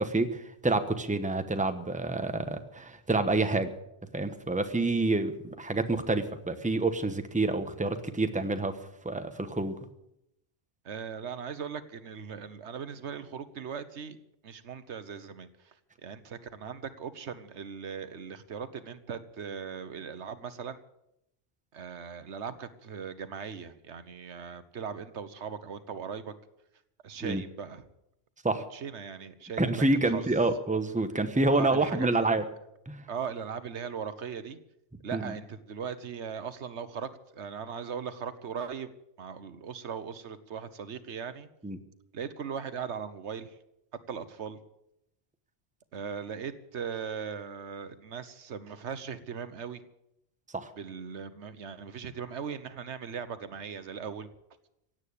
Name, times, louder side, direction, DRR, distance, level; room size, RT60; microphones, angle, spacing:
voice 1, 0.0-3.7 4.1-8.8 9.0-9.8 27.2-27.4 28.4-28.7 29.6-32.4 32.9-33.1 35.1-35.3 41.6-41.8 50.5-50.7, right 2 dB, 5° right, 8 dB, 1.0 m, -28 dB
voice 2, 10.8-14.2 14.4-15.7 16.0-20.8 21.7-26.3 27.0-27.8 28.7-30.2 31.5-32.3 33.1-34.6 35.0-38.9 39.2-41.5 42.1-43.6 44.1-44.6 45.9-49.8 50.8-54.3, right 7 dB, 80° right, 13 dB, 1.3 m, -39 dB
16.5 x 9.2 x 8.5 m, 0.82 s
omnidirectional pair, 1.2 m